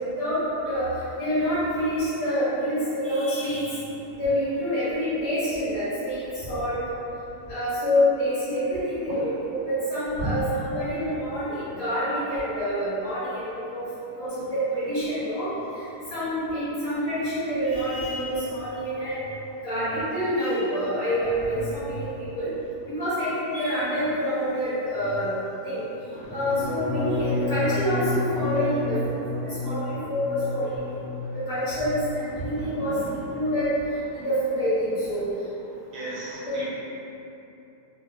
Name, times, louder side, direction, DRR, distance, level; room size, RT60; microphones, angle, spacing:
voice 1, 0.0-3.8 4.2-6.8 7.5-9.4 9.6-13.9 14.2-15.5 16.1-19.2 19.6-22.5 22.9-25.4 25.6-25.8 26.3-29.2 29.4-30.7 31.5-33.7 34.1-35.2 36.5-36.6, equal, 90° left, -15 dB, 1.8 m, -27 dB
sound 1, 26.2-32.2 32.5-33.0 33.3-33.6, left 2 dB, 20° right, 1.5 m, -31 dB
voice 2, 32.7-33.1 34.1-34.2 35.9-36.7, right 1 dB, 80° right, -7 dB, 1.3 m, -37 dB
3.9 x 2.3 x 2.3 m, 2.8 s
omnidirectional pair, 1.7 m